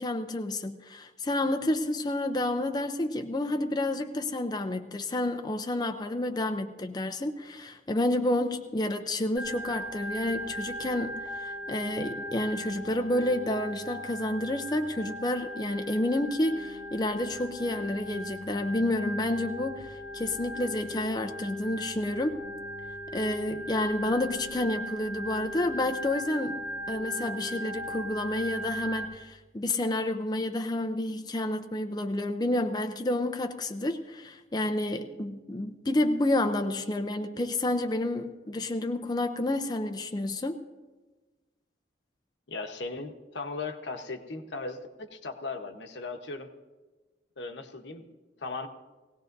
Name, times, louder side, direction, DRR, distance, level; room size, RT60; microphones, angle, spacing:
voice 1, 0.0-22.4 23.1-40.6, left 1 dB, 25° left, 5 dB, 0.5 m, -30 dB
Organ, 9.4-29.1, equal, 5° right, 3.2 m, -38 dB
voice 2, 42.5-46.5 47.4-48.7, left 3 dB, 80° left, 5 dB, 1.0 m, -38 dB
19.5 x 17.0 x 2.6 m, 1.3 s
head